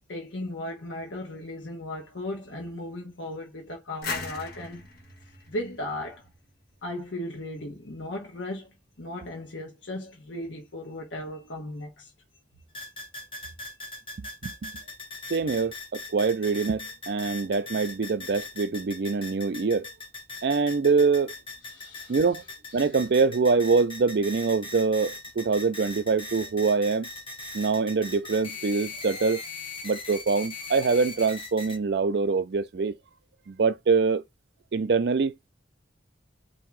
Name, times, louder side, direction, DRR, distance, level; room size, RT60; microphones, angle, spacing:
voice 1, 0.1-4.9 5.5-6.3 6.8-12.1 21.6-22.2 22.7-22.9, left 1 dB, 80° left, 1.1 m, -36 dB
sound 1, 4.0-6.7, left 4 dB, 55° left, 1.4 m, -38 dB
sound 2, 12.7-31.8, left 3 dB, 30° left, 1.1 m, -40 dB
voice 2, 14.2-14.7 15.3-19.9 20.4-21.3 22.1-22.4 22.7-27.1 27.5-29.4 29.8-33.0 33.5-34.2 34.7-35.3, right 4 dB, 60° right, 0.4 m, -24 dB
3.7 x 2.7 x 4.6 m
head